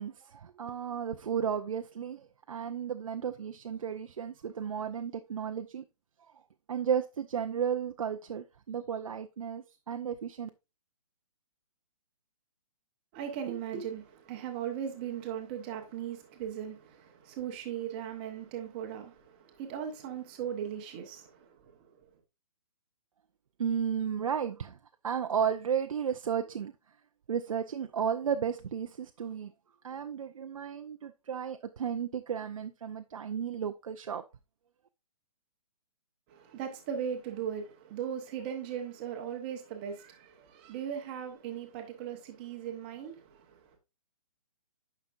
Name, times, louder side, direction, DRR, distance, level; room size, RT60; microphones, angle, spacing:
voice 1, 0.0-5.8 6.7-10.5 23.6-24.8 25.0-26.7 27.3-29.5 29.8-34.2, right 8 dB, 60° right, 0.5 m, -33 dB
voice 2, 13.1-21.9 36.3-43.7, right 8 dB, 15° right, 0.9 m, -38 dB
9.5 x 5.8 x 2.5 m
hypercardioid pair, 175°, 20 cm